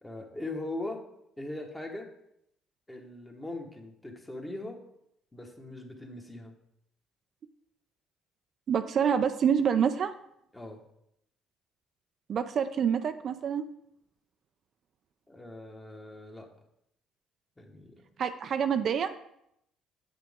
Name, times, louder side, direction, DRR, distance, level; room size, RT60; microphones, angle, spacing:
voice 1, 0.0-1.1 1.4-2.1 2.9-4.8 5.3-6.5 10.5-10.8 15.3-16.5 17.6-18.0, left 2 dB, 15° left, 2 dB, 1.5 m, -40 dB
voice 2, 8.7-10.1 12.3-13.7 18.2-19.1, right 7 dB, 55° right, 9 dB, 0.4 m, -27 dB
8.2 x 5.9 x 3.6 m, 0.76 s
supercardioid pair, 70°, 0 cm